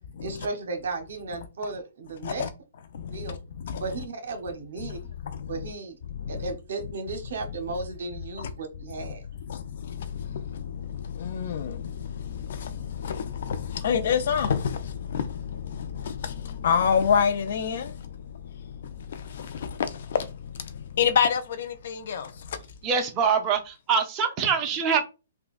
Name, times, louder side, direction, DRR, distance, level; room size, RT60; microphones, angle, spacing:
voice 1, 0.2-2.4 3.1-3.4 3.8-5.0 5.5-6.0 6.3-9.2, right 3 dB, 70° right, 0.9 m, -34 dB
voice 2, 2.9-4.0 4.8-5.0 5.2-5.6 6.1-6.5 8.4-8.5 9.5-22.7, left 7 dB, 60° left, 0.5 m, -29 dB
voice 3, 22.8-25.0, right 6 dB, 25° right, 0.6 m, -24 dB
3.7 x 2.3 x 2.4 m
hypercardioid pair, 145°, 0 cm